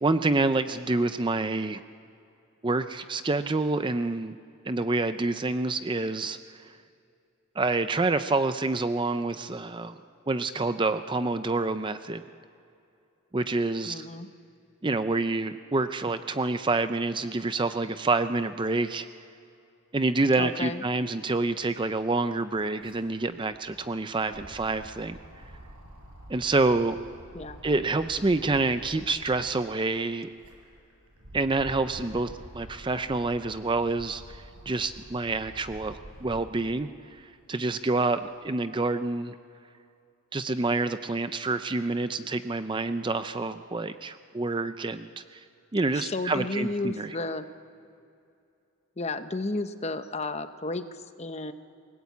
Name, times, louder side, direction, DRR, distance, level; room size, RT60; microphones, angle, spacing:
voice 1, 0.0-1.8 2.6-4.4 4.7-6.4 7.6-9.9 10.3-12.2 13.3-14.1 14.8-19.1 19.9-25.2 26.3-27.0 27.6-30.3 31.3-36.9 37.2-39.3 40.3-45.4 45.7-47.1, right 3 dB, 20° right, 11 dB, 0.5 m, -27 dB
voice 2, 13.9-14.3 20.4-20.8 27.3-27.6 45.9-47.5 49.0-51.5, left 2 dB, 30° left, 10 dB, 0.8 m, -32 dB
sound 1, 21.6-21.7 21.9-29.7 30.2-36.7 37.2-38.3, equal, 90° right, 5.2 m, -48 dB
28.5 x 19.0 x 8.4 m, 2.6 s
head